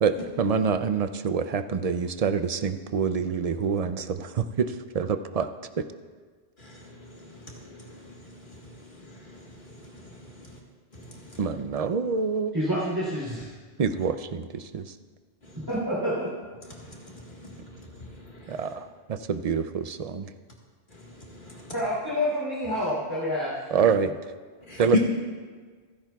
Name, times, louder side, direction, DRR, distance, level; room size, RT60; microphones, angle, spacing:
voice 1, 0.0-5.5 5.8-5.9 11.4-12.5 13.8-14.9 18.5-20.3 23.7-24.1 24.8-25.0, right 6 dB, 50° right, 10 dB, 0.4 m, -26 dB
voice 2, 6.6-10.6 10.9-11.4 16.7-18.7 20.9-21.7 24.7-25.0, left 2 dB, 50° left, -2 dB, 1.8 m, -37 dB
voice 3, 12.5-13.5 15.7-16.3 21.7-23.5, equal, 20° right, -9 dB, 3.2 m, -28 dB
27.0 x 10.5 x 2.3 m, 1.5 s
omnidirectional pair, 1.1 m